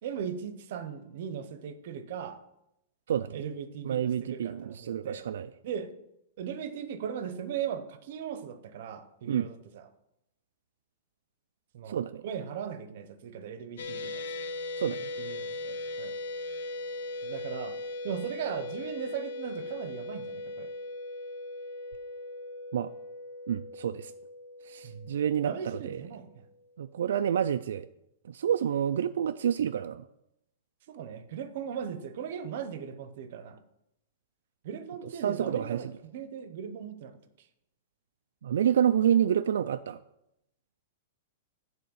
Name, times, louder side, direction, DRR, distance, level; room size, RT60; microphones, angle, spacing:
voice 1, 0.0-2.4 3.3-5.2 5.6-5.9 6.4-9.9 11.7-12.0 12.2-14.2 15.2-16.1 17.2-17.8 18.0-20.7 24.8-25.1 25.4-26.4 30.9-33.6 34.6-37.5, right 8 dB, 45° right, 11 dB, 0.7 m, -38 dB
voice 2, 3.1-3.4 3.8-5.5 9.3-9.5 11.9-12.2 14.8-15.1 22.7-22.9 23.5-24.1 24.6-26.0 26.8-27.9 28.3-30.1 35.2-35.9 38.4-40.0, right 9 dB, 75° right, 9 dB, 0.3 m, -28 dB
sound 1, 13.8-26.1, left 2 dB, 85° left, 0.8 m, -39 dB
9.4 x 4.1 x 7.1 m, 0.84 s
supercardioid pair, 180°, 0 cm